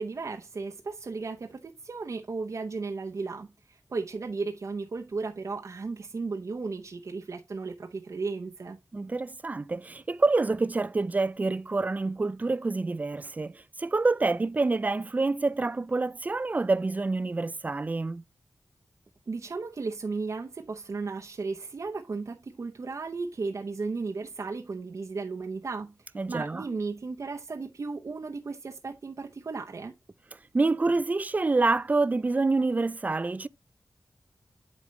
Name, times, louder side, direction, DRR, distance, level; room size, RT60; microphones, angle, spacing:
voice 1, 0.0-8.8 19.3-29.9, right 4 dB, 60° right, 0.7 m, -35 dB
voice 2, 8.9-18.2 26.2-26.6 30.5-33.5, right 3 dB, 25° right, 0.3 m, -27 dB
8.5 x 5.1 x 3.2 m
wide cardioid pair, 100°, 6 cm